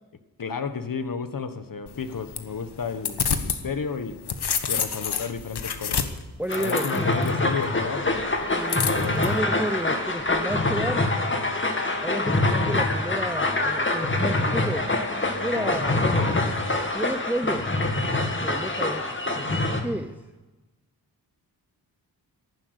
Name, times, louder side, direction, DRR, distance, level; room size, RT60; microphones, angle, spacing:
voice 1, 0.4-4.2 4.7-6.1 6.6-8.4 8.8-9.3 15.5-15.9, left 5 dB, 55° left, 10 dB, 1.4 m, -32 dB
sound 1, 1.9-3.6 4.0-7.3 8.7-9.3, left 7 dB, 70° left, 1.4 m, -28 dB
voice 2, 6.4-7.1 8.5-11.1 12.0-14.9 15.4-16.3 16.9-17.7 18.4-19.2 19.8-20.2, right 1 dB, 5° right, 8 dB, 0.7 m, -31 dB
sound 2, 6.5-19.8, left 2 dB, 30° left, 2.2 m, -25 dB
14.0 x 11.5 x 8.1 m, 1.1 s
wide cardioid pair, 80°, 40 cm